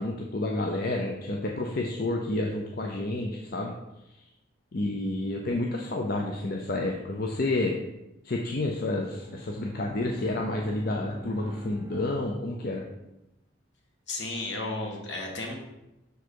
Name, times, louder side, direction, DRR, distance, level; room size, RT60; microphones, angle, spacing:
voice 1, 0.0-3.7 4.7-7.8 8.2-12.8, left 2 dB, 50° left, 1 dB, 0.6 m, -30 dB
Bowed string instrument, 9.0-13.0, equal, 15° right, 0.4 m, -44 dB
voice 2, 14.1-15.6, left 2 dB, 70° left, 1 dB, 1.5 m, -33 dB
6.7 x 4.7 x 4.6 m, 0.95 s
head